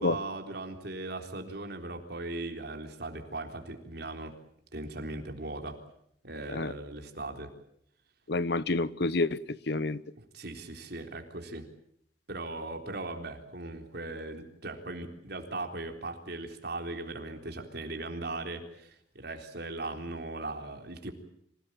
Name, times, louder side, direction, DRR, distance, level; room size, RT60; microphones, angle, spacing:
voice 1, 0.0-4.4 4.7-5.8 6.2-7.5 10.2-11.7 12.3-21.1, right 2 dB, 60° right, 3.9 m, -38 dB
voice 2, 8.3-10.0, left 3 dB, 65° left, 0.9 m, -29 dB
26.5 x 18.0 x 9.1 m
head